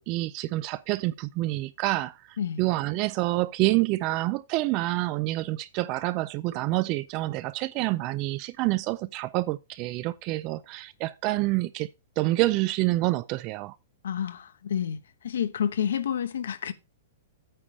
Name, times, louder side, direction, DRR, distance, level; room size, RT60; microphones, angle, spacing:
voice 1, 0.0-11.9 12.2-13.8, right 19 dB, 30° right, 0.4 m, -27 dB
voice 2, 14.0-15.0 15.2-16.7, left 8 dB, 90° left, 1.0 m, -29 dB
8.9 x 4.9 x 5.3 m
hypercardioid pair, 165°, 0 cm